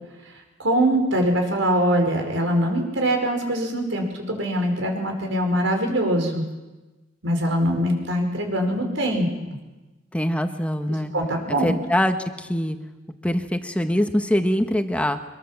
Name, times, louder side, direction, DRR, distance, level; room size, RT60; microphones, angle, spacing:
voice 1, 0.6-6.4 7.2-9.6 11.1-11.7, right 1 dB, 85° right, 3 dB, 5.1 m, -23 dB
voice 2, 10.1-11.1 11.5-12.8 13.2-15.2, equal, 5° left, 7 dB, 1.4 m, -23 dB
25.0 x 21.5 x 7.3 m, 1.1 s
head